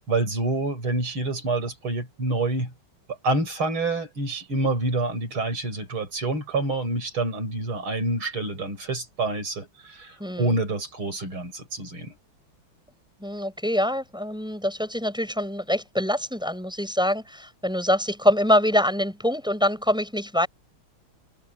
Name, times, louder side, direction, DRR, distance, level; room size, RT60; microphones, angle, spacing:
voice 1, 0.1-2.7 3.2-12.2, right 2 dB, 85° right, 6.9 m, -27 dB
voice 2, 10.2-10.6 13.2-20.5, equal, ahead, 7.5 m, -24 dB
omnidirectional pair, 2.2 m